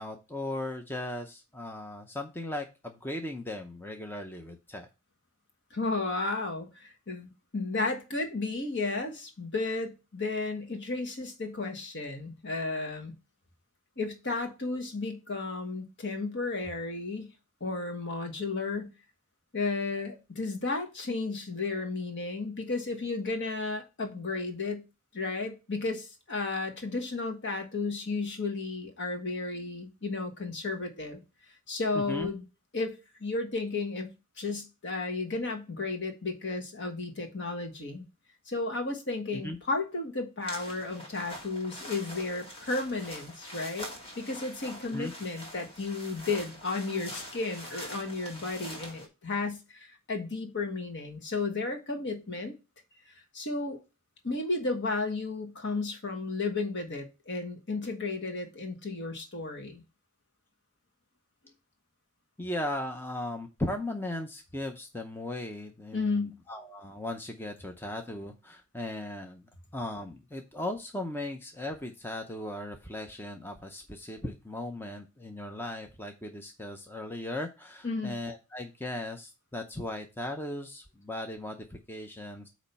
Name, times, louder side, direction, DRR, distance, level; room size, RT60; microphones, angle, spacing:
voice 1, 0.0-4.9 31.9-32.3 39.3-39.6 44.9-45.1 62.4-69.4 69.7-82.5, left 1 dB, 10° left, 0.6 m, -37 dB
voice 2, 5.7-13.1 14.0-17.3 17.6-18.9 19.5-24.8 25.1-31.2 31.7-32.4 32.7-34.1 34.4-38.1 38.5-43.9 44.2-52.5 53.3-53.8 54.2-59.8 65.9-66.3 77.8-78.2, left 3 dB, 55° left, 1.5 m, -33 dB
sound 1, 40.4-49.1, left 1 dB, 25° left, 1.9 m, -44 dB
8.6 x 3.1 x 5.5 m
head